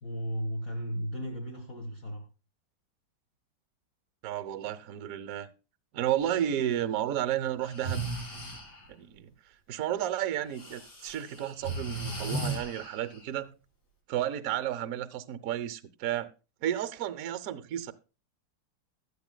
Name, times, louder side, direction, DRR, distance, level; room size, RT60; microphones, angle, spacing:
voice 1, 0.0-2.2, equal, 45° left, 1.8 m, -35 dB
voice 2, 4.2-5.5 5.9-8.0 8.9-9.3 9.7-13.5 14.1-16.3 16.6-17.9, right 11 dB, 65° right, 0.9 m, -32 dB
Breathing, 6.2-6.5 7.6-8.9 10.5-13.2, right 2 dB, 75° left, 5.2 m, -36 dB
15.0 x 11.5 x 2.2 m
omnidirectional pair, 2.3 m